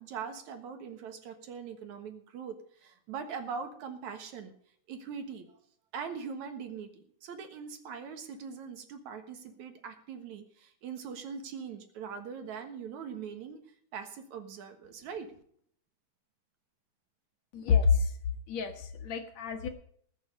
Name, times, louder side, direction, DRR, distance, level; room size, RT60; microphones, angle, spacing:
voice 1, 0.0-4.5 4.9-5.6 5.9-13.6 13.9-15.3, right 6 dB, 70° right, 7 dB, 2.8 m, -41 dB
voice 2, 17.5-18.1 18.5-19.7, left 5 dB, 65° left, 6 dB, 2.4 m, -27 dB
19.5 x 7.0 x 5.3 m, 0.62 s
omnidirectional pair, 3.6 m